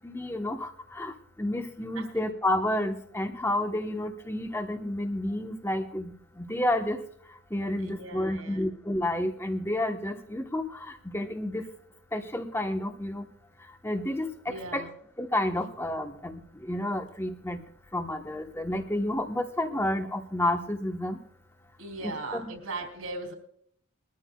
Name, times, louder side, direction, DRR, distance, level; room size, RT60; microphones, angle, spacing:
voice 1, 0.0-7.0 7.5-11.6 12.1-13.2 13.8-14.9 15.2-17.6 17.9-21.2 22.0-22.5, left 1 dB, 10° left, 4 dB, 1.1 m, -30 dB
voice 2, 7.8-8.7 14.5-14.9 21.8-23.4, right 2 dB, 80° right, 3 dB, 3.3 m, -38 dB
22.0 x 13.5 x 2.4 m, 0.64 s
head